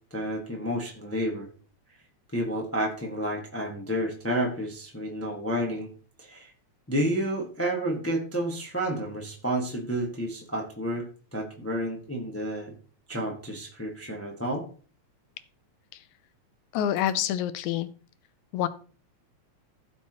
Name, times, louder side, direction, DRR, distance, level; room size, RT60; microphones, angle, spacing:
voice 1, 0.1-1.5 2.3-5.9 6.2-6.5 6.9-12.7 13.1-14.7, right 1 dB, 15° left, 0 dB, 0.4 m, -30 dB
voice 2, 16.7-17.9 18.5-18.7, left 11 dB, 85° left, 14 dB, 2.1 m, -26 dB
16.0 x 5.8 x 3.0 m, 0.39 s
omnidirectional pair, 3.3 m